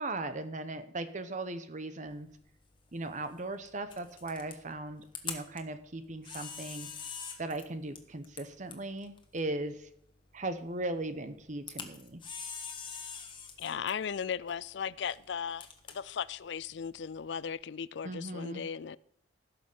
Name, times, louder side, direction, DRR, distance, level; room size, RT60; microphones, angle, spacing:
voice 1, 0.0-2.3 2.9-6.9 7.4-9.9 10.3-12.2 18.0-18.6, right 2 dB, 45° right, 0.9 m, -38 dB
Camera, 2.1-17.5, left 6 dB, 25° left, 1.4 m, -47 dB
voice 2, 13.6-19.0, left 7 dB, 70° left, 0.4 m, -37 dB
16.5 x 6.7 x 5.5 m
head